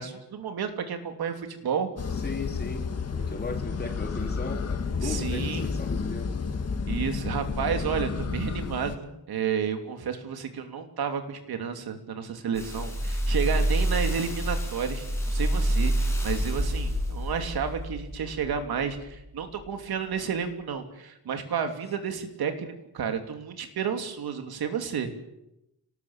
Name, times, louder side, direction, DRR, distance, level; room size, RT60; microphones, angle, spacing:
voice 1, 0.0-1.9 5.0-5.7 6.9-25.1, right 7 dB, 75° right, 6 dB, 3.1 m, -31 dB
sound 1, 2.0-9.0, left 5 dB, 40° left, 1.9 m, -31 dB
voice 2, 2.2-2.9 3.1-6.3, left 3 dB, 25° left, 3 dB, 3.7 m, -37 dB
sound 2, 12.5-19.0 19.6-19.7, right 1 dB, 5° left, 6.9 m, -27 dB
26.5 x 19.0 x 7.4 m, 0.88 s
wide cardioid pair, 155°, 37 cm